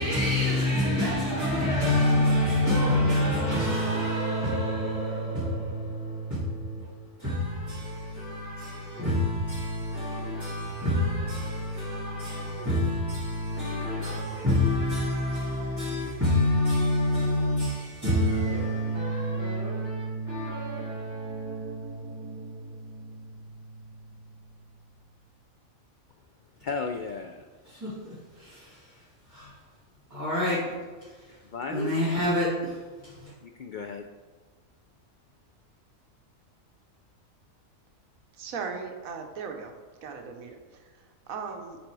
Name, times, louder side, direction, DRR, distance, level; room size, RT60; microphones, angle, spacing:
voice 1, 0.0-24.0 27.6-29.0 29.3-29.6 30.1-30.7 31.0-31.4 31.7-33.3, left 1 dB, 15° right, 2.1 m, -28 dB
voice 2, 26.6-27.5 31.4-31.9 33.4-34.1, left 5 dB, 75° left, 0.4 m, -34 dB
voice 3, 38.3-39.7 40.0-41.8, right 5 dB, 85° right, 1.2 m, -38 dB
10.5 x 4.0 x 4.7 m
omnidirectional pair, 1.4 m